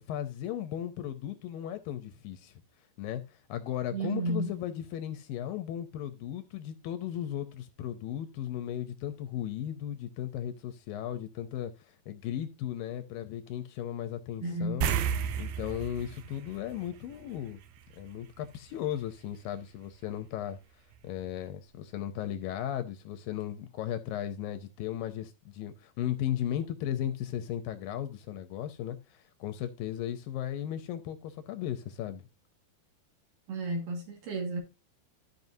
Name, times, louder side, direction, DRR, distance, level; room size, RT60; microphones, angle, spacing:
voice 1, 0.0-2.5 3.0-3.2 3.5-11.7 12.1-15.0 15.4-17.6 18.0-20.6 21.0-32.2, left 11 dB, 80° left, 2.3 m, -36 dB
voice 2, 3.9-4.5 14.4-14.8 33.5-34.6, right 2 dB, 65° right, 3.4 m, -32 dB
sound 1, 14.8-17.6 17.9-18.1 21.0-21.1 21.4-21.5, right 8 dB, 85° right, 1.8 m, -32 dB
13.5 x 5.5 x 2.7 m
omnidirectional pair, 4.4 m